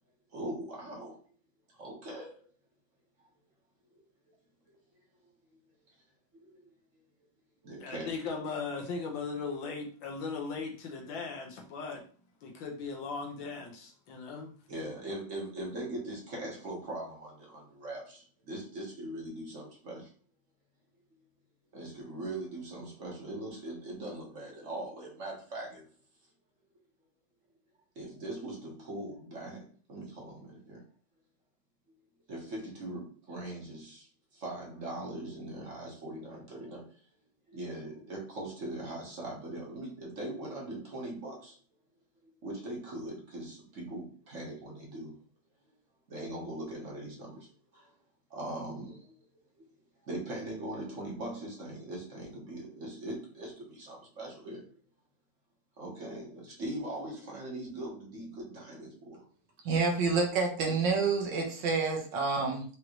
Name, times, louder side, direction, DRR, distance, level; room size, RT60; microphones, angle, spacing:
voice 1, 0.3-1.2 1.7-2.5 6.3-6.7 7.6-8.2 14.7-20.1 21.7-25.9 27.9-30.8 32.3-36.9 37.5-41.6 42.4-45.2 46.1-47.9 48.3-49.1 50.0-54.8 55.8-59.2 60.6-60.9, right 1 dB, 45° right, -2 dB, 1.4 m, -41 dB
voice 2, 7.8-12.0 12.4-14.5, left 4 dB, 75° left, 2 dB, 1.6 m, -38 dB
voice 3, 59.6-62.6, right 4 dB, 70° right, 2 dB, 1.6 m, -28 dB
5.1 x 3.1 x 3.0 m, 0.42 s
omnidirectional pair, 2.2 m